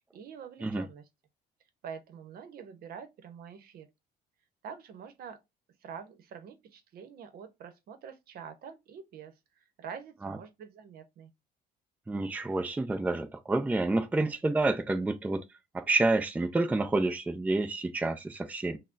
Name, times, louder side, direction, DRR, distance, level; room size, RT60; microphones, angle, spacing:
voice 1, 0.1-1.0 1.8-3.9 4.6-5.4 5.8-9.3 9.8-11.3, right 7 dB, 65° right, 0.8 m, -46 dB
voice 2, 12.1-15.5 15.7-18.8, right 2 dB, 10° right, 0.4 m, -29 dB
5.8 x 2.1 x 2.5 m
cardioid pair, 110°, 17 cm